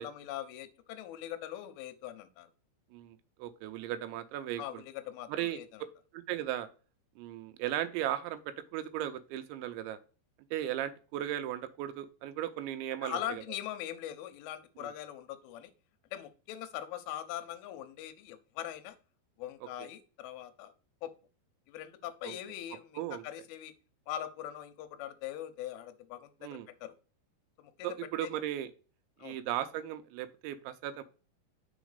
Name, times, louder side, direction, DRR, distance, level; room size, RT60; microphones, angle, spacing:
voice 1, 0.0-2.5 4.6-5.9 13.0-15.7 16.1-19.0 19.4-20.7 21.0-21.1 21.7-23.7 24.1-26.9 27.6-28.0 28.2-28.3 29.2-29.4, left 12 dB, 80° left, 9 dB, 2.2 m, -41 dB
voice 2, 2.9-4.8 5.3-5.6 6.1-6.7 7.2-10.0 10.5-13.4 14.8-14.9 19.8-19.9 22.2-22.4 23.0-23.2 26.4-26.7 27.8-28.7 29.2-31.0, right 12 dB, 90° right, 11 dB, 3.0 m, -36 dB
6.2 x 4.0 x 4.9 m, 0.36 s
omnidirectional pair, 5.1 m